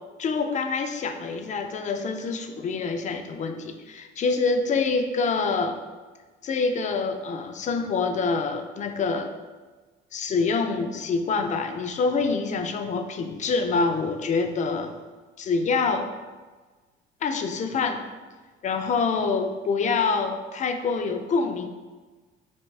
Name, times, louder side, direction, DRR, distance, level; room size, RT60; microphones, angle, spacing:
voice 1, 0.2-5.8 6.4-9.3 10.1-14.9 15.4-16.1 17.2-18.0 18.6-21.7, left 4 dB, 35° left, 7 dB, 0.4 m, -26 dB
5.1 x 3.5 x 2.4 m, 1.3 s
supercardioid pair, 95°, 21 cm